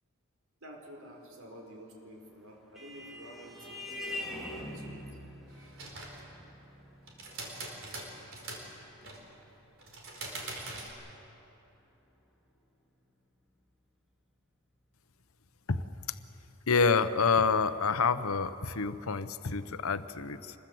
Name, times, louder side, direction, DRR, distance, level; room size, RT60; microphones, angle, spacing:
voice 1, 0.6-5.0, right 1 dB, 85° right, 1 dB, 4.6 m, -50 dB
Vehicle horn car horn honking, 2.1-11.1, left 1 dB, ahead, 2.8 m, -45 dB
sound 1, 5.5-6.3 7.1-8.7 9.0-9.3 9.8-10.9, right 2 dB, 65° right, 4.8 m, -42 dB
voice 2, 16.7-20.5, left 5 dB, 90° left, 11 dB, 0.9 m, -28 dB
26.0 x 21.5 x 7.9 m, 3.0 s
head